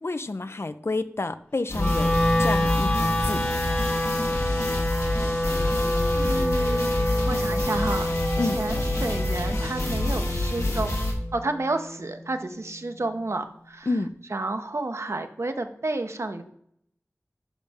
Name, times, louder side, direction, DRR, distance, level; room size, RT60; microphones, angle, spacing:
voice 1, 0.0-2.1 2.4-3.4 8.4-8.6 13.9-14.1, left 3 dB, 55° left, 12 dB, 0.5 m, -29 dB
sound 1, 1.7-11.1, left 1 dB, 80° left, 1.9 m, -27 dB
Wind instrument woodwind instrument, 1.7-11.9, left 1 dB, 25° left, 1.1 m, -27 dB
voice 2, 6.1-8.1 8.5-11.0 11.3-13.9 14.3-16.4, right 2 dB, 65° right, 7 dB, 0.9 m, -31 dB
10.0 x 5.3 x 3.5 m, 0.71 s
wide cardioid pair, 45°, 5 cm